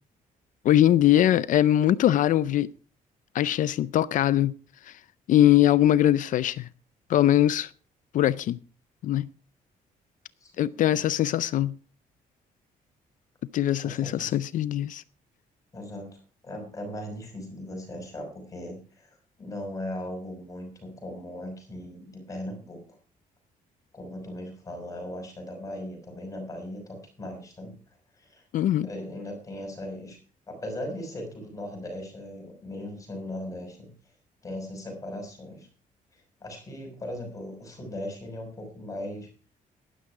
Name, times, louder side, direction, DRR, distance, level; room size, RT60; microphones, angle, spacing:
voice 1, 0.6-2.7 3.3-4.5 5.3-6.7 7.1-7.7 8.1-8.6 9.0-9.3 10.6-11.7 13.5-15.0 28.5-28.9, left 12 dB, 60° left, 0.5 m, -21 dB
voice 2, 10.4-11.0 13.8-14.3 15.7-16.1 16.4-22.8 23.9-27.7 28.2-28.4 28.8-30.2 30.5-33.9 34.4-35.7 36.1-39.3, left 1 dB, 20° left, 6.0 m, -38 dB
12.5 x 11.5 x 4.8 m
cardioid pair, 180°, 15 cm